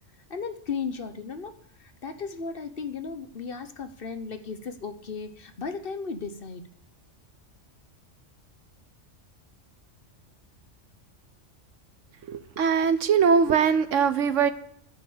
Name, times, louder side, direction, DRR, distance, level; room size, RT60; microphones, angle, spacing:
voice 1, 0.3-1.5 2.0-6.6, left 5 dB, 50° left, 9 dB, 1.2 m, -35 dB
voice 2, 12.3-14.5, right 6 dB, 80° right, 12 dB, 1.3 m, -21 dB
13.5 x 7.1 x 8.7 m, 0.70 s
omnidirectional pair, 1.3 m